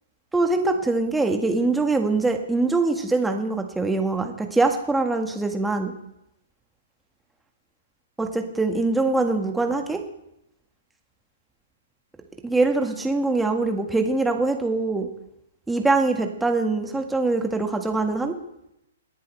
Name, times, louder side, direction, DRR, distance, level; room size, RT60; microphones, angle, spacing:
voice 1, 0.3-5.9 8.2-10.0 12.4-15.1 15.7-18.3, right 3 dB, 5° right, 4 dB, 1.8 m, -23 dB
27.5 x 10.5 x 3.3 m, 0.83 s
figure-of-eight pair, 120°, 0 cm